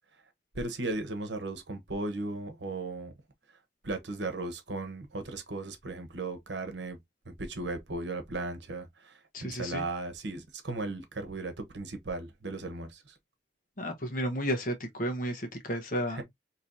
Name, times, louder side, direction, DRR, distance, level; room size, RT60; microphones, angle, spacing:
voice 1, 0.5-3.1 3.8-7.0 7.3-13.1 16.1-16.2, right 2 dB, 70° right, 1.0 m, -36 dB
voice 2, 9.3-9.8 13.8-16.2, equal, 45° left, 1.0 m, -32 dB
4.5 x 3.0 x 2.6 m
head